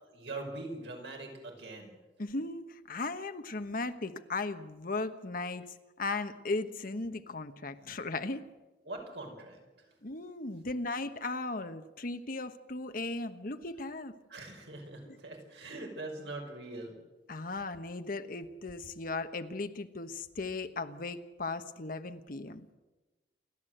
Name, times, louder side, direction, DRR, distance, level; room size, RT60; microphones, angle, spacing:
voice 1, 0.1-2.0 8.9-9.8 14.3-17.0, right 2 dB, 75° right, 2 dB, 5.5 m, -42 dB
voice 2, 2.2-8.4 10.0-14.1 17.3-22.7, left 3 dB, 50° left, 9 dB, 1.2 m, -37 dB
28.5 x 12.0 x 7.9 m, 1.1 s
head